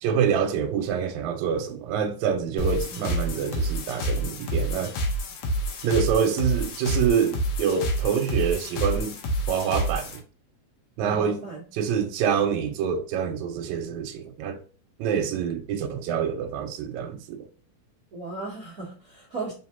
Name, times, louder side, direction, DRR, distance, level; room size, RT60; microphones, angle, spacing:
voice 1, 0.0-4.9 5.8-9.2 9.5-10.2 11.0-11.4 11.7-14.6 15.0-17.5, right 7 dB, 85° right, 1.9 m, -26 dB
sound 1, 2.6-10.2, right 1 dB, 70° left, 1.8 m, -28 dB
voice 2, 11.0-11.6 18.1-19.5, right 3 dB, 60° right, 0.9 m, -36 dB
4.6 x 3.2 x 2.8 m
omnidirectional pair, 3.4 m